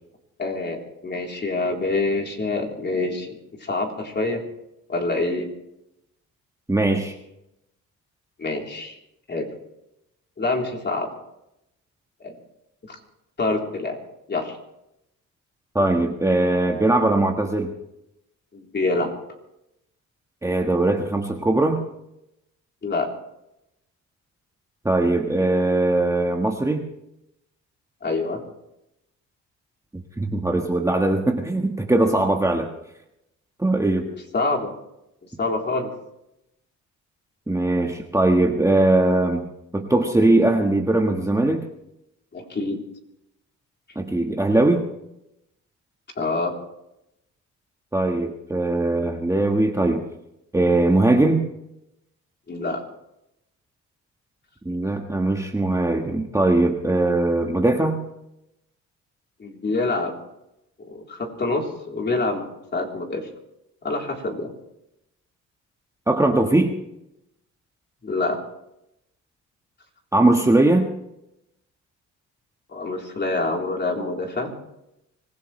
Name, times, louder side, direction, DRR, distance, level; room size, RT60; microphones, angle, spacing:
voice 1, 0.4-4.4 4.9-5.5 8.4-9.0 9.3-9.5 10.4-11.1 12.2-12.4 12.9-13.0 13.4-14.0 14.3-14.6 18.5-19.2 22.8-23.1 28.0-28.4 34.3-34.7 35.4-35.9 42.3-42.8 46.2-46.5 52.5-52.8 59.4-60.1 60.8-63.3 63.8-64.5 68.0-68.4 72.7-74.5, left 3 dB, 35° left, 1 dB, 3.7 m, -26 dB
voice 2, 6.7-7.1 15.7-17.7 20.4-21.8 24.8-26.9 29.9-32.7 33.6-34.1 37.5-41.7 43.9-44.9 47.9-50.1 50.5-51.5 54.6-58.0 66.1-66.8 70.1-70.9, right 2 dB, 10° right, 2 dB, 1.5 m, -20 dB
25.0 x 16.0 x 3.3 m, 0.84 s
cardioid pair, 90°, 30 cm